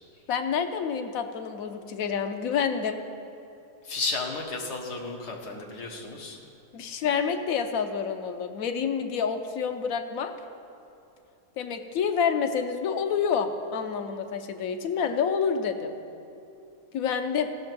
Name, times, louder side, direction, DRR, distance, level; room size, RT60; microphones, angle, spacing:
voice 1, 0.3-3.0 6.7-10.3 11.6-15.9 16.9-17.5, left 6 dB, 65° left, 7 dB, 1.1 m, -28 dB
voice 2, 3.8-6.4, left 3 dB, 85° left, 0 dB, 1.9 m, -33 dB
16.0 x 6.6 x 6.1 m, 2.8 s
omnidirectional pair, 1.7 m